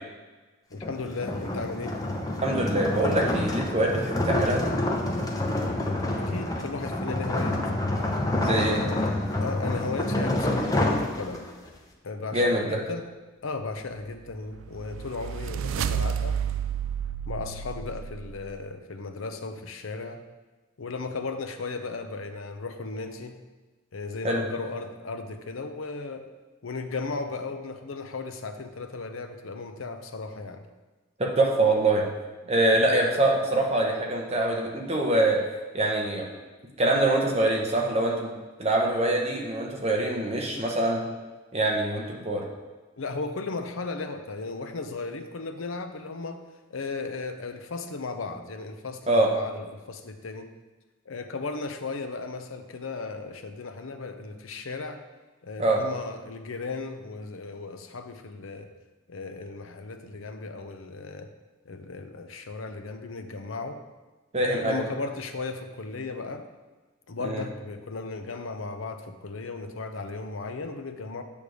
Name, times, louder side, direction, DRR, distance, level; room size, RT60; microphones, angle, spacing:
voice 1, 0.7-1.9 6.2-7.6 8.6-9.1 9.4-11.5 12.0-13.0 13.4-16.4 17.3-20.2 20.8-23.4 23.9-26.2 26.6-30.6 40.6-40.7 43.0-46.4 46.7-50.5 51.1-55.0 55.4-58.7 59.1-61.3 61.7-63.8 64.3-66.5 67.1-71.2, left 3 dB, 80° left, 7 dB, 0.7 m, -35 dB
sound 1, 0.7-11.7, left 1 dB, 20° left, 0.7 m, -28 dB
voice 2, 2.4-4.7 8.4-8.8 12.3-12.8 24.2-24.4 31.2-32.0 32.5-35.4 35.7-36.3 36.8-41.0 41.5-42.4 49.1-49.3 55.6-55.8 64.3-64.9 67.2-67.4, right 2 dB, 30° right, 0 dB, 1.0 m, -24 dB
sound 2, 14.3-18.5, right 8 dB, 75° right, 0.3 m, -31 dB
8.5 x 3.5 x 6.3 m, 1.2 s
head